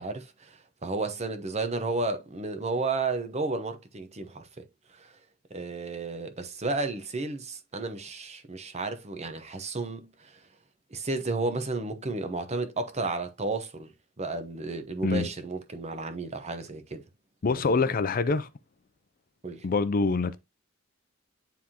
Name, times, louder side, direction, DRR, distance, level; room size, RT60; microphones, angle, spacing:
voice 1, 0.0-4.6 5.0-5.1 5.5-10.3 10.9-13.9 14.2-17.0 17.6-17.8 19.4-19.7, right 3 dB, 35° right, 0.9 m, -32 dB
voice 2, 17.4-18.5 19.6-20.4, left 4 dB, 45° left, 0.5 m, -25 dB
9.7 x 3.5 x 2.9 m
head